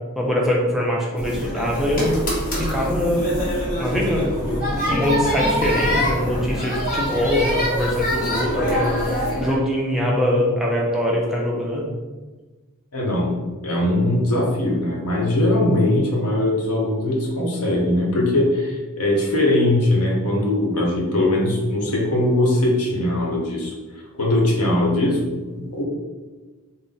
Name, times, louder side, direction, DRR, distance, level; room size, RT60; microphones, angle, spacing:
voice 1, 0.2-2.2 2.6-9.0 9.4-11.9, equal, ahead, -3 dB, 0.5 m, -23 dB
sound 1, 1.2-9.5, equal, 40° left, 0.9 m, -24 dB
voice 2, 12.9-23.7 24.2-25.8, left 1 dB, 85° left, -2 dB, 0.9 m, -20 dB
3.7 x 2.1 x 4.0 m, 1.3 s
head